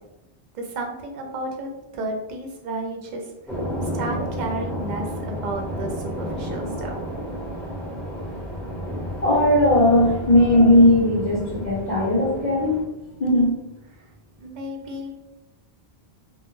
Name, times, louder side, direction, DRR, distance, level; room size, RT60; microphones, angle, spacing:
voice 1, 0.5-1.7 1.9-3.2 3.9-6.9 13.9-14.0 14.4-15.1, right 2 dB, 55° right, 2 dB, 0.5 m, -32 dB
sound 1, 3.5-12.8, equal, ahead, 0.7 m, -31 dB
voice 2, 9.2-12.8 13.2-13.5, left 1 dB, 45° left, -8 dB, 0.8 m, -17 dB
2.1 x 2.1 x 2.9 m, 0.95 s
omnidirectional pair, 1.1 m